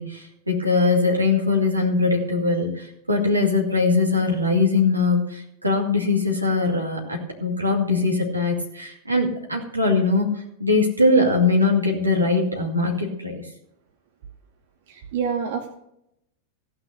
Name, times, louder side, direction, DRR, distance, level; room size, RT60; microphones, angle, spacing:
voice 1, 0.0-13.4, left 3 dB, 85° right, 1 dB, 2.4 m, -21 dB
voice 2, 14.9-15.8, right 6 dB, 55° right, 6 dB, 1.1 m, -27 dB
15.5 x 5.9 x 6.5 m, 0.79 s
figure-of-eight pair, 90°, 0 cm